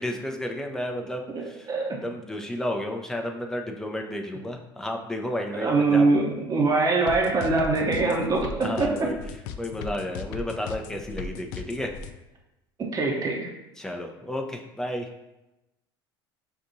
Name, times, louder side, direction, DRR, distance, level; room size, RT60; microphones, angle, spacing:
voice 1, 0.0-1.7 2.0-6.1 8.6-9.2 9.6-11.9 13.8-15.1, left 1 dB, 5° left, 3 dB, 0.6 m, -32 dB
voice 2, 1.3-2.0 5.6-9.1 12.9-13.5, right 3 dB, 30° right, -1 dB, 0.9 m, -23 dB
sound 1, 7.1-12.1, left 6 dB, 65° left, 0.4 m, -37 dB
5.9 x 2.6 x 2.6 m, 0.94 s
hypercardioid pair, 75°, 12 cm